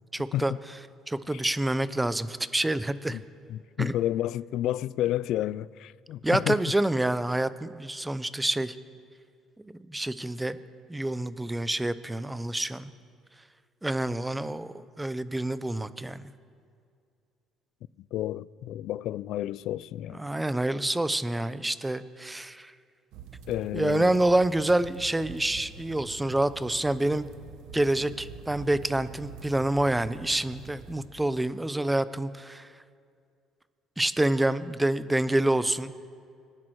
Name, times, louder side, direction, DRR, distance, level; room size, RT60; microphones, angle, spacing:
voice 1, 0.1-0.5 1.1-3.2 3.8-3.9 6.2-8.7 9.6-10.6 10.9-12.9 13.8-16.3 20.1-22.7 23.7-27.3 27.7-32.7 34.0-35.9, right 1 dB, 10° right, 0.6 m, -27 dB
voice 2, 3.5-6.6 18.1-20.2 23.5-24.1, left 13 dB, 70° left, 0.3 m, -31 dB
sound 1, 23.1-31.1, right 6 dB, 80° right, 1.2 m, -45 dB
25.5 x 10.5 x 4.6 m
cardioid pair, 115°, 0 cm